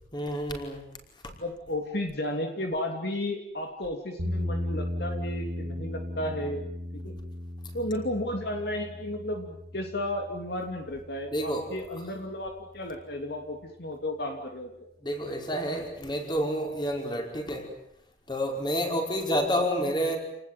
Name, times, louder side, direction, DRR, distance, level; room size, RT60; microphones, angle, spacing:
voice 1, 0.1-0.8 11.3-11.6 15.0-17.7 18.3-20.2, equal, 25° left, 3 dB, 5.3 m, -29 dB
voice 2, 1.4-6.7 6.9-7.2 7.7-14.9, left 1 dB, 60° left, 4 dB, 3.1 m, -33 dB
sound 1, 4.2-12.3, left 1 dB, 60° right, 2.7 m, -36 dB
29.0 x 20.0 x 9.4 m, 0.77 s
head